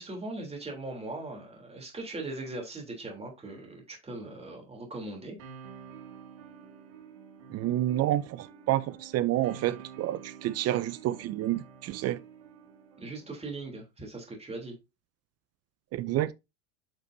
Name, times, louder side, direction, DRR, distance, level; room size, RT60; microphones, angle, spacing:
voice 1, 0.0-5.4 13.0-14.8, right 2 dB, 15° right, 3.4 m, -39 dB
sound 1, 5.4-13.4, right 7 dB, 65° right, 2.7 m, -49 dB
voice 2, 7.5-12.2 15.9-16.3, right 14 dB, 40° right, 0.5 m, -29 dB
8.9 x 6.7 x 2.7 m
supercardioid pair, 110°, 42 cm